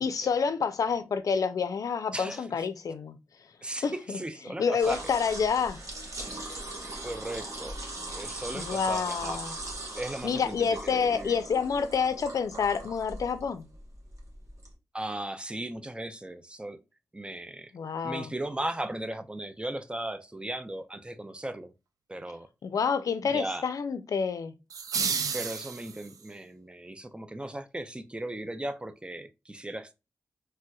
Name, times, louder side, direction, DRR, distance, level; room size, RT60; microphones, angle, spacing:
voice 1, 0.0-3.2 3.8-4.2 4.6-5.8 8.5-9.6 10.2-13.7 17.7-18.3 22.6-24.5, left 6 dB, 75° left, 0.4 m, -28 dB
voice 2, 2.1-2.7 3.6-5.0 6.8-7.8 8.1-9.4 10.0-11.4 14.9-16.8 17.1-17.7 18.0-21.7 22.1-22.5 23.2-23.7 25.3-29.9, right 1 dB, 15° right, 0.5 m, -37 dB
sound 1, 4.8-14.7, right 1 dB, 60° right, 1.1 m, -40 dB
sound 2, 24.7-26.3, right 6 dB, 85° right, 0.4 m, -31 dB
3.3 x 2.8 x 2.3 m
cardioid pair, 50°, 6 cm